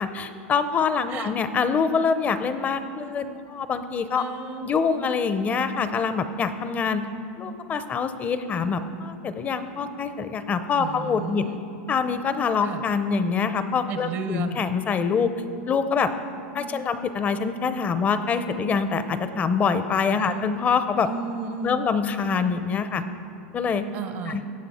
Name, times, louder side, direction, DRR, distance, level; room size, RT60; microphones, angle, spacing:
voice 1, 0.0-4.2 4.6-7.1 7.4-11.5 11.9-15.3 15.7-16.1 16.5-21.1 21.6-23.0 23.5-23.9 24.3-24.4, left 5 dB, 25° left, 11 dB, 0.6 m, -25 dB
voice 2, 4.2-5.0 10.8-11.6 12.6-12.8 13.9-14.6 16.5-17.1 20.2-20.5 21.1-21.9 23.9-24.4, right 6 dB, 50° right, 9 dB, 0.8 m, -34 dB
16.0 x 7.2 x 4.2 m, 2.5 s
supercardioid pair, 125°, 6 cm